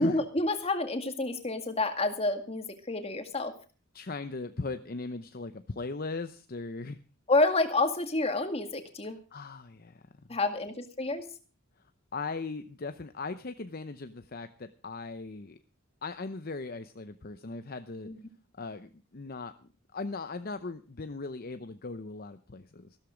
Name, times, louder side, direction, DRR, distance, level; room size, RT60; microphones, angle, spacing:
voice 1, 0.0-3.5 7.3-9.2 10.3-11.2 18.1-18.2, left 2 dB, 30° left, 7 dB, 2.0 m, -29 dB
voice 2, 3.9-7.0 9.3-10.0 10.3-10.4 12.1-15.6 16.0-18.1 18.6-23.0, left 3 dB, 45° left, 10 dB, 0.8 m, -38 dB
15.0 x 13.0 x 5.1 m, 0.37 s
head